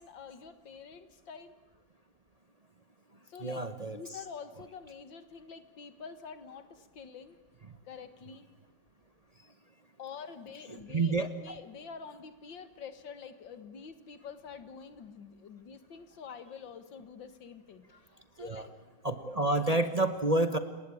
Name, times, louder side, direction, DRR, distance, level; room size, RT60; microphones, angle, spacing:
voice 1, 0.0-1.5 3.3-7.4 7.9-8.5 10.0-18.7, left 6 dB, 90° left, 11 dB, 2.3 m, -47 dB
voice 2, 3.4-4.0 10.7-11.3 18.4-18.7 19.0-20.6, right 2 dB, 25° right, 9 dB, 0.9 m, -29 dB
28.5 x 20.0 x 8.5 m, 1.1 s
omnidirectional pair, 2.0 m